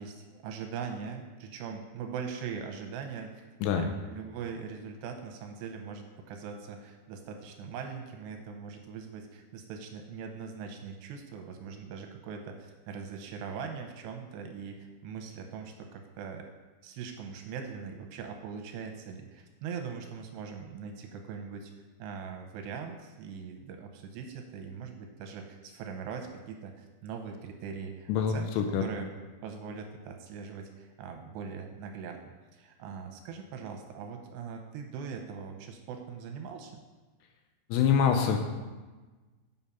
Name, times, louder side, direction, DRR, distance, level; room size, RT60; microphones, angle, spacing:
voice 1, 0.0-16.5 16.8-21.7 22.0-28.5 28.8-29.2 29.4-32.2 32.5-36.8, right 6 dB, 80° right, 4 dB, 2.7 m, -41 dB
voice 2, 28.1-28.8 37.7-38.4, left 7 dB, 85° left, 5 dB, 2.6 m, -25 dB
7.3 x 7.1 x 5.5 m, 1.3 s
omnidirectional pair, 5.3 m